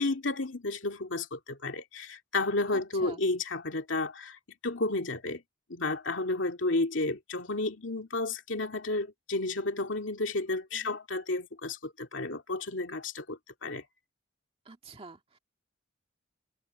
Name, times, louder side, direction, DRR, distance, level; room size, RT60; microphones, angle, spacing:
voice 1, 0.0-5.4 5.7-13.8, left 2 dB, 75° left, 2.6 m, -32 dB
voice 2, 2.7-3.2 10.7-11.0 14.7-15.4, right 3 dB, 30° right, 1.9 m, -47 dB
head